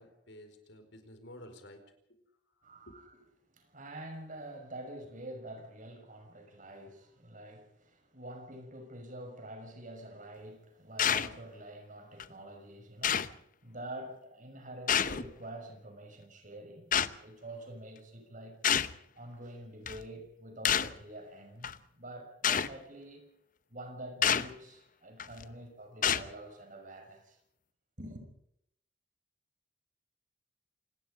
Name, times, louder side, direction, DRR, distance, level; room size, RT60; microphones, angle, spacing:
voice 1, 0.0-1.8 2.1-2.2 2.5-3.0, left 1 dB, 85° left, 4.7 m, -52 dB
voice 2, 2.6-3.0 3.5-13.3 13.6-18.6 19.2-23.2 23.7-27.4 28.0-28.3, right 1 dB, 45° right, 6.0 m, -47 dB
sound 1, 11.0-11.3 12.2-12.3 13.0-13.4 14.9-15.3 16.9-17.1 18.6-19.0 19.9-20.0 20.6-21.0 21.6-21.7 22.4-22.7 24.2-24.5 25.2-25.4 26.0-26.3, left 8 dB, 45° left, 0.8 m, -28 dB
27.5 x 19.5 x 5.2 m
head